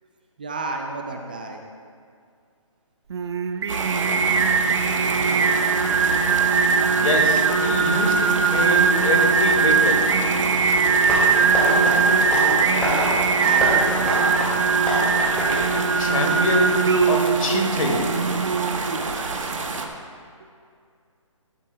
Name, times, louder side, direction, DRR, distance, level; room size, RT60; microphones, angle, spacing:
voice 1, 0.4-1.6 5.0-5.5 11.6-14.5 20.4-20.5, right 3 dB, 15° right, 3 dB, 0.3 m, -32 dB
Singing, 3.1-19.4, right 5 dB, 55° right, 0.7 m, -21 dB
sound 1, 3.7-19.9, right 3 dB, 70° right, 1.2 m, -29 dB
voice 2, 6.9-10.3 15.7-18.4, left 2 dB, 85° left, 2 dB, 2.2 m, -25 dB
Tap, 11.1-16.5, equal, 5° left, 2.1 m, -27 dB
13.5 x 13.0 x 2.3 m, 2.2 s
hypercardioid pair, 165°, 17 cm